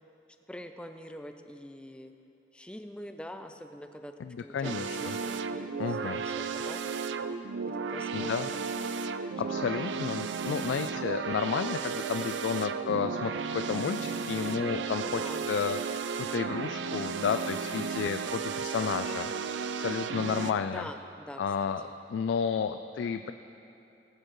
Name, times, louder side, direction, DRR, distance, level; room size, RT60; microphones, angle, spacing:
voice 1, 0.5-2.1 2.5-6.9 7.7-8.5 9.5-9.8 15.0-15.5 20.6-21.4 21.8-21.9, equal, 5° left, 7 dB, 0.4 m, -45 dB
voice 2, 4.2-5.2 5.8-6.2 8.1-8.5 9.2-20.9 21.4-23.3, left 6 dB, 90° left, 9 dB, 0.3 m, -32 dB
sound 1, 4.6-20.5, right 5 dB, 80° right, 0.4 m, -34 dB
18.0 x 8.7 x 3.1 m, 2.8 s
head